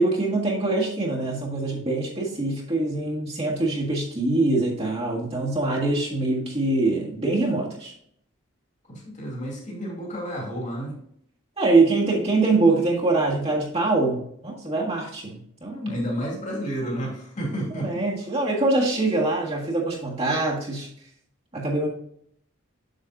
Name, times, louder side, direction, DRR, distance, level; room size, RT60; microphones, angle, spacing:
voice 1, 0.0-7.9 11.6-15.7 17.7-20.9 21.5-21.9, right 2 dB, 30° right, -4 dB, 1.7 m, -24 dB
voice 2, 8.9-10.9 15.6-18.0, equal, 35° left, -2 dB, 2.6 m, -31 dB
7.8 x 7.7 x 2.6 m, 0.67 s
head